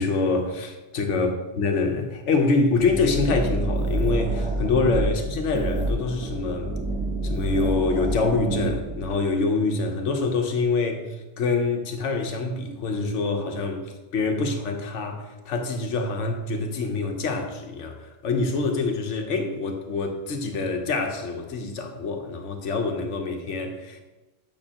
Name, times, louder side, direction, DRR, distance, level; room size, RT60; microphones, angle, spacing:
voice 1, 0.0-1.3 1.6-6.7 7.2-11.1 11.4-24.0, left 3 dB, 85° left, 1.2 m, -25 dB
sound 1, 2.7-9.1, right 2 dB, 10° right, 0.7 m, -28 dB
8.8 x 5.7 x 2.9 m
omnidirectional pair, 1.2 m